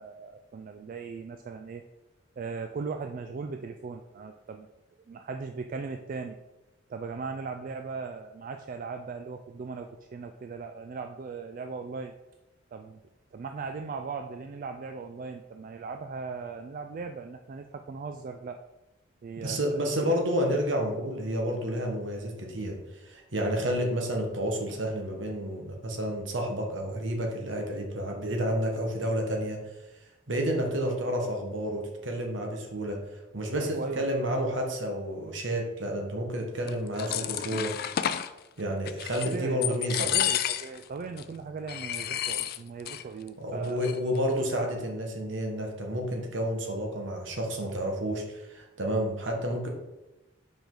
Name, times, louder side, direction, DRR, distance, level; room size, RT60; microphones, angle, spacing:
voice 1, 0.0-1.8 2.4-4.7 5.1-6.4 6.9-12.1 12.7-13.0 13.3-18.6 19.2-20.1 33.6-34.4 39.2-39.6 40.0-44.0, right 4 dB, 45° right, 6 dB, 0.3 m, -38 dB
voice 2, 19.4-29.6 30.3-33.0 33.3-37.7 38.6-40.1 43.4-49.7, equal, 70° right, 1 dB, 1.3 m, -30 dB
sound 1, 36.7-38.3 38.9-39.4 39.6-40.8 41.2-41.3 41.7-43.0 43.3-43.4 43.6-44.2, left 11 dB, 50° left, 0.3 m, -30 dB
5.1 x 4.9 x 3.9 m, 0.99 s
head